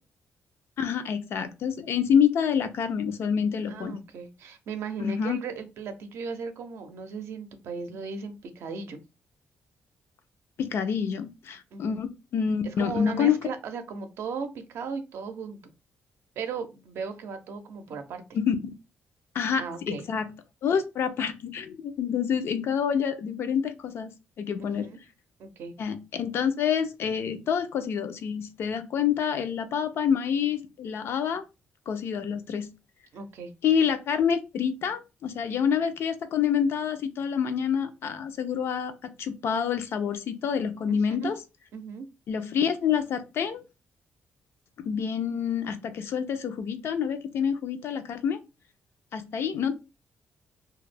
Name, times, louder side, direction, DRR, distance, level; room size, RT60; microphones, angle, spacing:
voice 1, 0.8-4.0 5.0-5.4 10.6-13.4 18.3-18.5 19.3-20.3 20.6-24.1 24.4-24.9 25.8-31.4 31.9-32.7 33.6-41.4 42.3-43.6 44.8-48.4 49.1-49.7, left 7 dB, 70° left, 9 dB, 0.4 m, -27 dB
voice 2, 3.7-9.0 11.7-12.0 12.6-15.7 16.4-18.2 19.6-20.1 24.6-25.0 25.4-25.7 33.1-33.5 40.9-41.3 41.7-42.1, right 5 dB, 75° right, 8 dB, 0.5 m, -37 dB
2.3 x 2.1 x 3.2 m, 0.28 s
cardioid pair, 105°, 4 cm